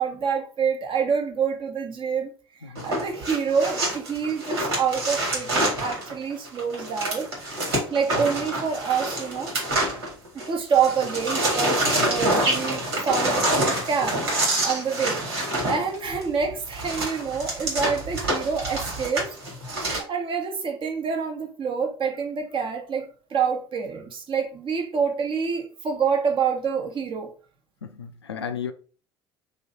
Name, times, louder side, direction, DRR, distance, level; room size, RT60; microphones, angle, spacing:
voice 1, 0.0-2.3 2.6-7.3 7.9-9.5 10.5-19.3 19.8-27.3, right 6 dB, 40° right, 1.0 m, -27 dB
sound 1, 2.7-10.5 10.7-20.0, right 1 dB, 75° right, 1.8 m, -26 dB
voice 2, 27.8-28.7, left 7 dB, 85° left, 0.4 m, -34 dB
3.0 x 2.6 x 4.0 m
figure-of-eight pair, 65°, 13 cm